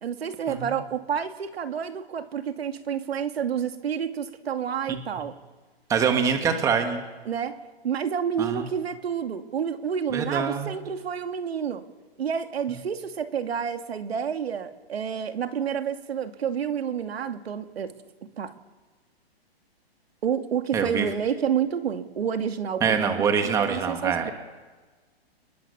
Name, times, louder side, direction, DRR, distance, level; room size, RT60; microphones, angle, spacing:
voice 1, 0.0-5.3 7.3-11.8 12.2-17.9 18.4-18.5 20.2-23.3 23.6-24.3, right 7 dB, 75° right, 7 dB, 2.4 m, -29 dB
voice 2, 5.9-7.0 8.4-8.6 10.1-10.7 20.7-21.1 22.8-24.3, right 6 dB, 10° right, 6 dB, 1.7 m, -24 dB
30.0 x 21.0 x 7.0 m, 1.4 s
hypercardioid pair, 165°, 31 cm